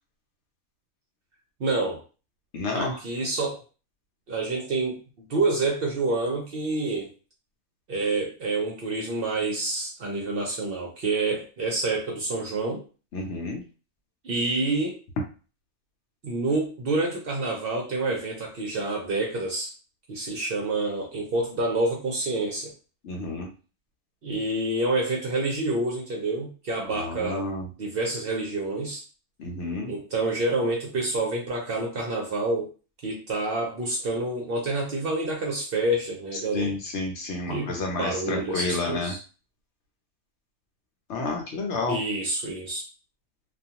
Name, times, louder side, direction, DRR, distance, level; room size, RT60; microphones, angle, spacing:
voice 1, 1.6-2.0 2.7-3.6 4.3-7.1 7.9-12.8 14.2-15.0 16.2-19.7 20.1-22.7 24.2-27.5 27.8-29.0 29.9-32.7 33.0-36.7 37.5-37.7 38.0-39.2 41.9-42.8, right 2 dB, 55° right, -1 dB, 0.7 m, -28 dB
voice 2, 2.5-3.0 13.1-13.6 23.0-23.5 26.9-27.7 29.4-29.9 36.5-39.1 41.1-42.0, left 3 dB, 65° left, 1 dB, 0.9 m, -30 dB
2.4 x 2.3 x 2.8 m, 0.35 s
omnidirectional pair, 1.4 m